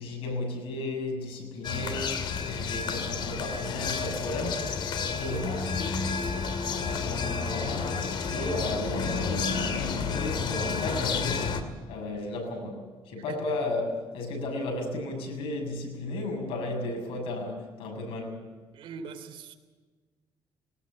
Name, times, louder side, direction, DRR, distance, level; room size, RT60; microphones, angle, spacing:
voice 1, 0.0-4.7 5.2-6.1 6.7-11.6 11.9-18.4, left 2 dB, 80° left, 2 dB, 6.9 m, -34 dB
sound 1, 1.6-11.6, left 5 dB, 60° left, 2.4 m, -30 dB
voice 2, 18.7-19.5, right 6 dB, 70° right, 6 dB, 3.0 m, -41 dB
19.5 x 19.5 x 7.6 m, 1.4 s
cardioid pair, 125°, 9 cm